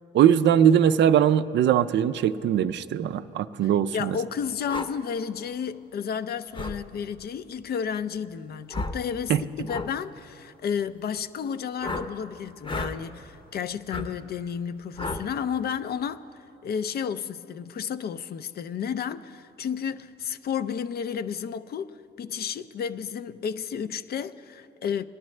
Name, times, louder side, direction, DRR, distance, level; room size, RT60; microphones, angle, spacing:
voice 1, 0.1-4.2 9.3-9.4, right 9 dB, 65° right, 0.4 m, -21 dB
voice 2, 3.9-16.2 16.6-25.0, left 7 dB, 50° left, 0.4 m, -32 dB
sound 1, 4.7-4.9 6.5-6.8 8.7-9.0 9.7-9.9 11.8-12.1 12.6-12.9 13.9-14.1 15.0-15.2, left 2 dB, 25° left, 0.7 m, -32 dB
20.0 x 11.0 x 3.2 m
cardioid pair, 90°, 20 cm